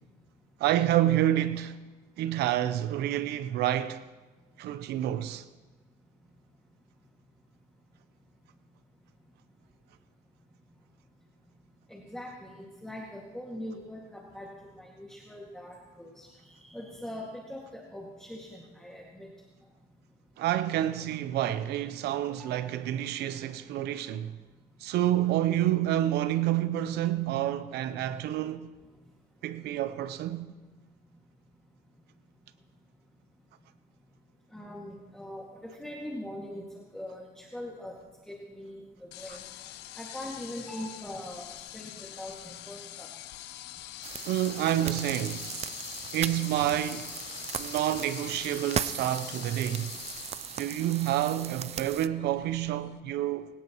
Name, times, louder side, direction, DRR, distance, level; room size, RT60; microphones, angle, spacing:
voice 1, 0.6-1.7 2.2-4.0 4.6-5.4 20.4-24.4 24.8-28.7 29.4-30.5 44.2-45.5 46.1-47.1 47.6-49.9 50.6-53.5, right 12 dB, 80° right, 0.7 m, -28 dB
voice 2, 11.9-19.3 22.3-22.6 34.5-36.6 36.9-37.9 38.3-39.4 40.0-43.1, left 1 dB, 5° left, 2.1 m, -42 dB
sound 1, 39.1-53.0, left 14 dB, 90° left, 0.6 m, -44 dB
sound 2, 44.0-52.1, right 9 dB, 40° right, 0.5 m, -38 dB
21.0 x 17.5 x 3.1 m
cardioid pair, 110°, 17 cm